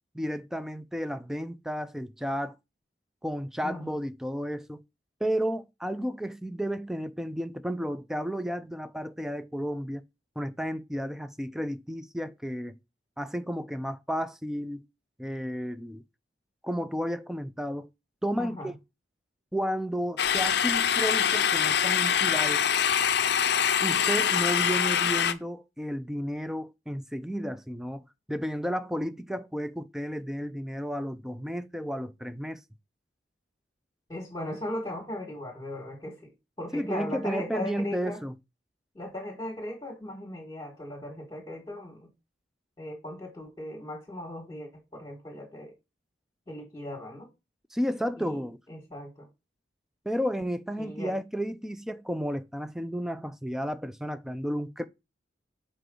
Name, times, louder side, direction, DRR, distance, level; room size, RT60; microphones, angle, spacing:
voice 1, 0.1-2.5 3.2-4.8 5.2-10.0 10.4-12.7 13.2-14.8 15.2-16.0 16.6-17.9 18.2-18.7 19.5-22.6 23.8-28.0 28.3-32.6 36.7-38.3 47.7-48.6 50.1-54.8, equal, 5° right, 0.4 m, -32 dB
voice 2, 3.6-4.0 18.4-18.7 34.1-36.3 36.6-38.2 38.9-42.1 42.8-45.7 46.5-47.3 48.2-48.4 48.7-49.3 50.8-51.2, left 1 dB, 20° left, 1.6 m, -38 dB
sound 1, 20.2-25.3, left 8 dB, 60° left, 0.5 m, -24 dB
5.5 x 4.9 x 3.8 m
head